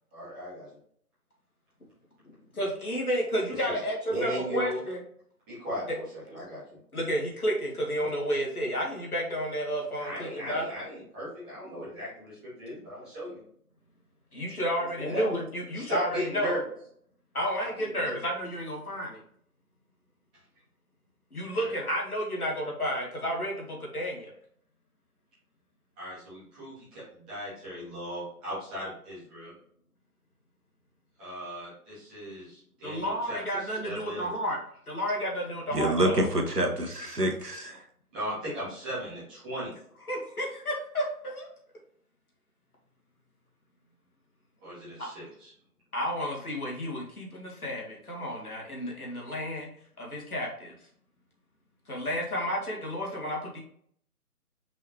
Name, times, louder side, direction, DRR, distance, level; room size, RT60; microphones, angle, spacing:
voice 1, 0.1-0.7 3.5-3.7 4.1-4.8 5.5-6.8 10.0-13.4 15.0-15.3 15.7-16.6 17.6-18.2 21.5-21.7 26.0-29.5 31.2-34.3 38.1-39.7 44.6-45.5, equal, 5° right, -12 dB, 1.2 m, -37 dB
voice 2, 2.5-5.0 6.3-6.4 6.9-10.7 14.3-16.6 17.3-19.2 21.3-24.3 32.8-34.6 34.9-36.2 40.1-41.5 45.0-45.1 45.9-49.7 50.0-50.7 51.9-53.6, equal, 70° left, -2 dB, 2.0 m, -31 dB
voice 3, 35.7-37.8, right 1 dB, 90° right, 3 dB, 1.2 m, -27 dB
5.4 x 3.3 x 2.9 m, 0.64 s
figure-of-eight pair, 150°, 46 cm